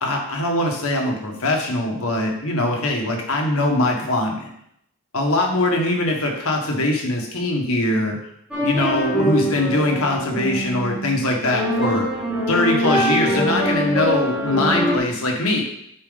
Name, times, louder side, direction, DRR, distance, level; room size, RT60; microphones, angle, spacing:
voice 1, 0.0-4.5 5.1-8.2 8.6-12.1 12.5-15.7, left 2 dB, 80° left, 1 dB, 1.6 m, -22 dB
sound 1, 8.5-15.0, equal, 5° right, 2.3 m, -23 dB
8.5 x 5.0 x 4.1 m, 0.73 s
head